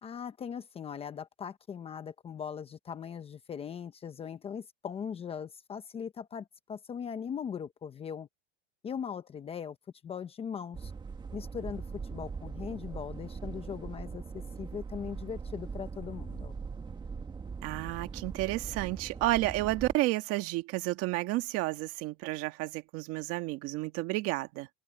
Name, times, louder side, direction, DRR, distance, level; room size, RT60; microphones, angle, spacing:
voice 1, 0.0-8.3 8.8-9.8 10.0-10.9 11.3-11.8 12.1-16.6, left 7 dB, 15° left, 0.9 m, -40 dB
sound 1, 10.7-19.9, right 5 dB, 15° right, 1.8 m, -41 dB
voice 2, 17.6-24.7, right 19 dB, 45° right, 1.7 m, -31 dB
open air
supercardioid pair, 155°, 33 cm